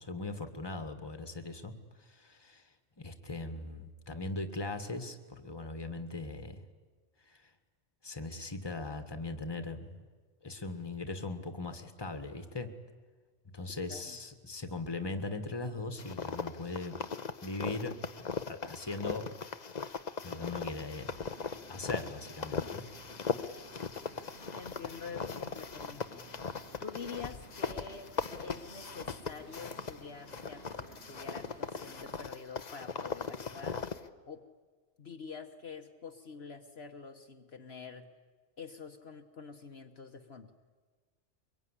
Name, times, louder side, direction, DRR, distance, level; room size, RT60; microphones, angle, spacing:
voice 1, 0.0-1.7 2.0-2.7 3.0-6.6 7.3-7.4 8.0-9.9 10.4-12.7 13.5-17.0 17.4-18.0 18.5-19.3 20.2-21.1 21.7-22.8, left 2 dB, 20° left, 8 dB, 1.6 m, -39 dB
voice 2, 13.7-14.2 24.2-26.3 26.8-28.1 28.4-33.8 34.3-34.5 35.0-38.1 38.6-40.5, left 5 dB, 60° left, 5 dB, 1.4 m, -47 dB
sound 1, 16.0-30.0 30.3-34.1, left 5 dB, 40° left, 0.9 m, -39 dB
sound 2, 20.6-32.2, right 2 dB, 65° right, 2.9 m, -56 dB
23.5 x 22.5 x 9.9 m, 1.4 s
omnidirectional pair, 1.2 m